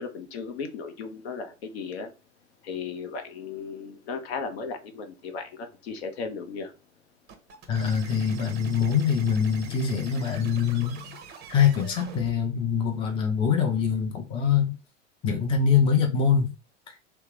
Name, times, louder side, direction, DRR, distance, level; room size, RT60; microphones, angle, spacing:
voice 1, 0.0-2.1 2.6-6.7, left 5 dB, 55° left, 0.7 m, -36 dB
sound 1, 7.3-12.3, right 6 dB, 25° right, 0.6 m, -45 dB
voice 2, 7.7-11.2 11.5-14.8 15.2-16.5, left 7 dB, 15° left, 0.5 m, -24 dB
3.2 x 2.0 x 3.1 m
figure-of-eight pair, 85°, 38 cm